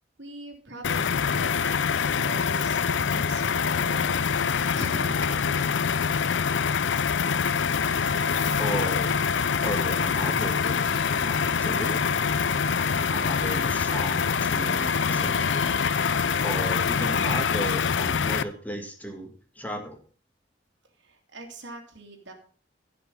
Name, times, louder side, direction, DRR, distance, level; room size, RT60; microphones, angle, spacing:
voice 1, 0.2-5.9 21.0-22.3, right 1 dB, 80° right, 3 dB, 2.7 m, -42 dB
sound 1, 0.8-18.4, left 6 dB, 90° left, 0.5 m, -25 dB
Organ, 7.8-18.5, right 3 dB, 70° left, 1.6 m, -38 dB
voice 2, 8.6-9.2 9.6-12.0 13.1-15.7 16.4-19.3 19.6-20.0, equal, 10° left, 3 dB, 2.0 m, -35 dB
15.0 x 6.0 x 5.4 m, 0.42 s
head